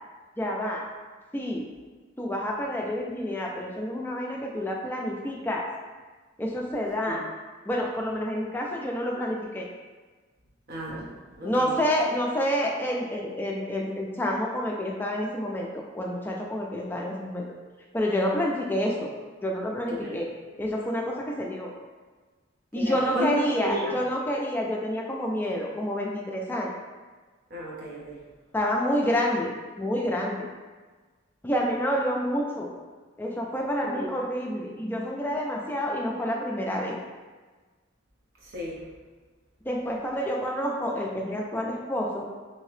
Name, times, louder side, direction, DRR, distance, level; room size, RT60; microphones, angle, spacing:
voice 1, 0.4-0.9 1.3-1.7 2.2-5.7 6.4-7.2 7.7-9.7 11.4-17.4 17.9-19.1 19.4-20.3 20.6-21.7 22.7-26.7 28.5-30.5 31.4-32.7 33.2-37.0 39.7-42.3, equal, 10° left, -1 dB, 0.3 m, -28 dB
voice 2, 10.7-11.7 19.9-20.2 22.7-24.0 27.5-28.2 33.8-34.1 38.4-38.8, right 1 dB, 50° right, -4 dB, 0.8 m, -33 dB
2.8 x 2.7 x 3.2 m, 1.4 s
head